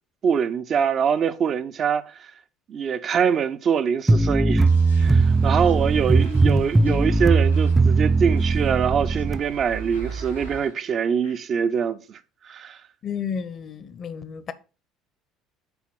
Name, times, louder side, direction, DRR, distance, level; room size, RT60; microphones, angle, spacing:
voice 1, 0.2-2.2 2.7-4.7 5.0-12.2 12.4-12.8, right 7 dB, 45° right, 0.7 m, -24 dB
sound 1, 4.1-9.4, right 3 dB, 10° right, 0.4 m, -19 dB
sound 2, 4.7-5.2 5.5-5.9 6.2-7.9 8.4-9.4 9.9-10.8 11.2-11.4, left 3 dB, 85° left, 2.3 m, -51 dB
sound 3, 5.0-10.6, right 5 dB, 70° right, 3.1 m, -35 dB
voice 2, 13.0-14.5, left 7 dB, 40° left, 0.8 m, -32 dB
7.1 x 4.4 x 5.9 m
figure-of-eight pair, 60°, 0 cm